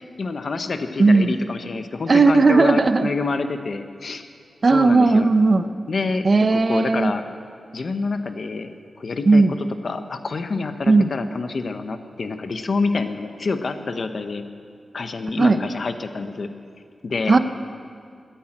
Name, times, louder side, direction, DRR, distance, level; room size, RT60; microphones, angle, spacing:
voice 1, 0.0-4.2 4.7-5.3 5.9-6.3 6.5-7.2 7.7-8.7 9.0-9.4 9.8-14.4 14.9-16.5 17.0-17.4, left 3 dB, 55° left, 8 dB, 0.9 m, -27 dB
voice 2, 1.0-1.3 2.1-3.1 4.6-5.7 6.2-7.1 9.2-9.6 10.9-11.1 15.4-15.6 17.3-17.4, right 3 dB, 40° right, 10 dB, 0.7 m, -16 dB
15.0 x 10.0 x 9.0 m, 2.3 s
wide cardioid pair, 140°, 0 cm